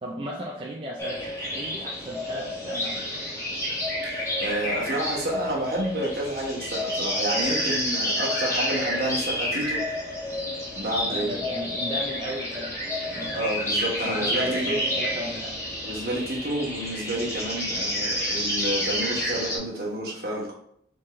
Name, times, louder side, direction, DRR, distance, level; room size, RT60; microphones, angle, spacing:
voice 1, 0.0-3.2 11.0-12.8 13.1-13.4 14.1-15.6, right 1 dB, 30° right, -3 dB, 0.5 m, -35 dB
sound 1, 1.0-19.6, left 1 dB, 15° left, 1.1 m, -29 dB
voice 2, 4.0-9.8 10.7-11.4 13.3-14.7 15.8-20.5, right 1 dB, 55° right, -4 dB, 1.5 m, -30 dB
4.2 x 3.7 x 3.2 m, 0.67 s
head